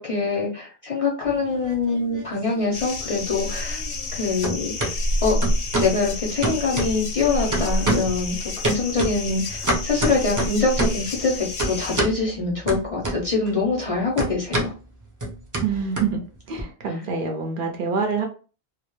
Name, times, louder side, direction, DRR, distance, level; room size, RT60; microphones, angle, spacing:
voice 1, 0.0-3.8 4.1-4.7 5.2-5.4 5.8-14.7, left 4 dB, 45° left, -3 dB, 0.5 m, -24 dB
sound 1, 1.3-2.3 2.6-4.2 4.4-4.9 5.4-6.0 6.4-7.2 7.5-8.2 8.6-11.1 11.6-12.2 12.7-13.5 13.8-16.6, right 2 dB, 30° right, 0.3 m, -27 dB
sound 2, 2.7-12.0, left 1 dB, 90° left, 0.8 m, -29 dB
voice 2, 15.6-18.3, right 5 dB, 60° right, 2 dB, 0.6 m, -26 dB
2.2 x 2.0 x 2.9 m, 0.36 s
omnidirectional pair, 1.1 m